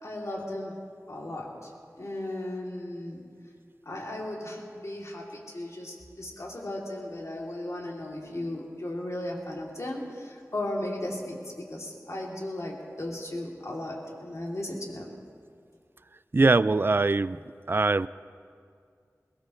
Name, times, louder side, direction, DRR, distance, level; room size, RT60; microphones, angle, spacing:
voice 1, 0.0-0.8 1.1-1.7 2.0-3.2 3.8-15.1, left 1 dB, 60° left, -3 dB, 3.0 m, -36 dB
voice 2, 16.3-17.4 17.7-18.1, right 3 dB, 40° right, 17 dB, 0.3 m, -22 dB
21.5 x 18.0 x 3.2 m, 2.2 s
wide cardioid pair, 55°, 6 cm